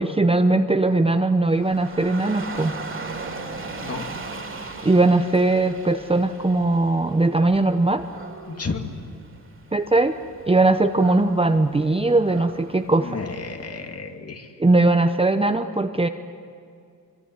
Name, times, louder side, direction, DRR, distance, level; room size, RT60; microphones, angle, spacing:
voice 1, 0.0-2.7 4.8-8.1 9.7-10.2 10.5-13.1 14.6-16.1, right 2 dB, 15° right, 8 dB, 0.8 m, -20 dB
Dog / Rain, 1.5-13.7, right 3 dB, 35° right, 3.1 m, -38 dB
voice 2, 8.5-8.9 13.0-14.6, left 4 dB, 40° left, 4 dB, 2.4 m, -32 dB
25.5 x 24.0 x 9.6 m, 2.3 s
wide cardioid pair, 135°, 35 cm